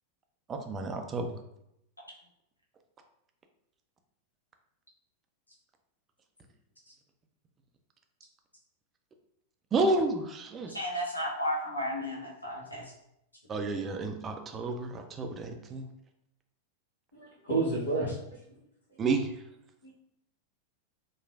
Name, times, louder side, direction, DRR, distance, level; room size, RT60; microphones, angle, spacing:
voice 1, 0.5-1.4 9.7-10.7 13.5-15.9 19.0-19.3, right 3 dB, 25° right, 5 dB, 0.3 m, -30 dB
voice 2, 10.7-12.9, equal, 85° left, -4 dB, 0.6 m, -33 dB
voice 3, 17.1-18.6 19.8-19.9, right 3 dB, 65° left, -6 dB, 1.3 m, -31 dB
3.0 x 2.3 x 2.3 m, 0.80 s
figure-of-eight pair, 90°, 0 cm